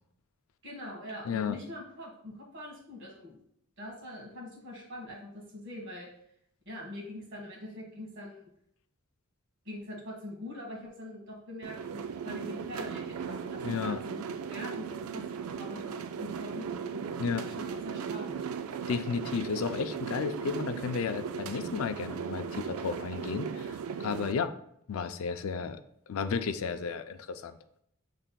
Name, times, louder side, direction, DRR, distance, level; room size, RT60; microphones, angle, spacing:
voice 1, 0.6-3.4 3.8-6.1 6.6-8.5 9.6-14.2 14.5-17.0 17.4-18.4, left 1 dB, 60° right, -1 dB, 1.4 m, -43 dB
voice 2, 1.2-1.6 13.6-14.0 17.2-17.5 18.9-24.5 24.9-25.8 26.1-27.6, left 5 dB, 80° left, 10 dB, 0.4 m, -33 dB
sound 1, 11.6-24.3, right 6 dB, 85° right, 0.3 m, -37 dB
7.2 x 3.3 x 2.2 m, 0.71 s
head